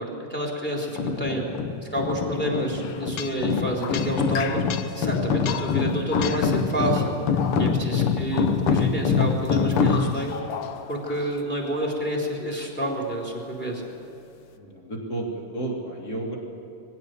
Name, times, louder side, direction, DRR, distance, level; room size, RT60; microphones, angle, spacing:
voice 1, 0.0-1.4 1.9-4.6 4.9-7.1 7.6-10.4 10.9-13.8, right 1 dB, 5° left, -1 dB, 3.4 m, -29 dB
sound 1, 0.9-10.4, left 6 dB, 90° left, 1.2 m, -25 dB
sound 2, 2.7-5.1 5.4-6.9 7.4-8.0 8.3-8.9 9.4-11.4, left 8 dB, 70° left, 1.6 m, -36 dB
voice 2, 14.6-16.4, right 2 dB, 30° left, -2 dB, 3.4 m, -33 dB
21.5 x 16.0 x 8.0 m, 3.0 s
omnidirectional pair, 3.9 m